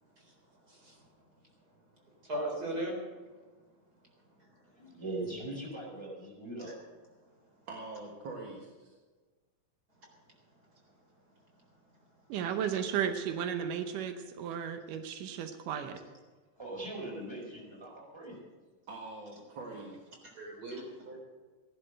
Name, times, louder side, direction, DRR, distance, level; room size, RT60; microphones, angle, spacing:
voice 1, 0.7-1.0 2.3-3.0 4.4-4.5 4.8-4.9 6.6-6.7 20.2-21.2, right 1 dB, 30° right, 4.3 m, -38 dB
voice 2, 4.9-6.7 16.6-18.4, right 2 dB, 10° right, 4.2 m, -40 dB
voice 3, 7.7-8.9 18.9-20.2, right 2 dB, 45° right, 1.9 m, -44 dB
voice 4, 12.3-16.0, right 8 dB, 85° right, 2.5 m, -34 dB
16.0 x 11.0 x 6.5 m
omnidirectional pair, 3.6 m